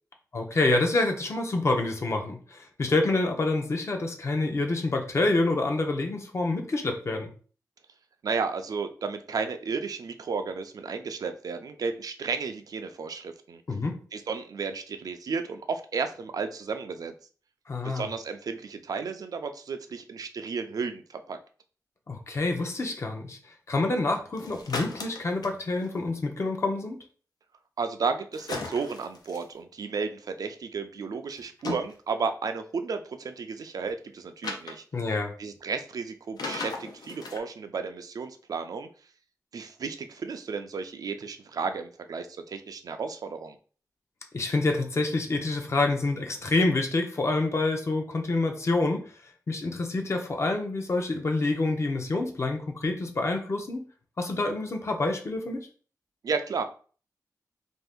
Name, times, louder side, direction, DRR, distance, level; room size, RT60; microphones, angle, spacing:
voice 1, 0.3-7.3 13.7-14.0 17.7-18.1 22.1-23.4 23.7-27.0 34.9-35.3 44.3-49.0 49.5-53.9 54.2-55.7, left 2 dB, 45° left, 3 dB, 0.6 m, -27 dB
voice 2, 8.2-13.6 14.1-17.1 17.8-21.4 27.8-34.8 35.4-38.9 39.5-43.6 56.2-56.6, right 5 dB, 70° right, 7 dB, 0.3 m, -33 dB
sound 1, 24.3-25.9 28.3-29.4 31.4-31.9 34.4-34.7 36.4-37.4, left 3 dB, 90° left, 0.5 m, -36 dB
2.6 x 2.4 x 3.5 m, 0.40 s
wide cardioid pair, 130°, 7 cm